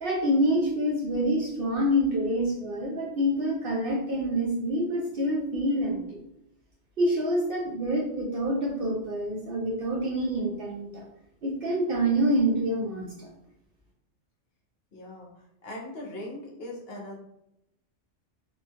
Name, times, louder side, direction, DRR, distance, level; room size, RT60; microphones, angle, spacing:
voice 1, 0.0-6.2 7.0-11.0 11.4-13.3, equal, 60° right, -2 dB, 0.6 m, -27 dB
voice 2, 14.9-15.3 15.6-17.2, left 1 dB, 55° left, -3 dB, 0.9 m, -39 dB
3.0 x 2.3 x 2.8 m, 0.80 s
omnidirectional pair, 1.3 m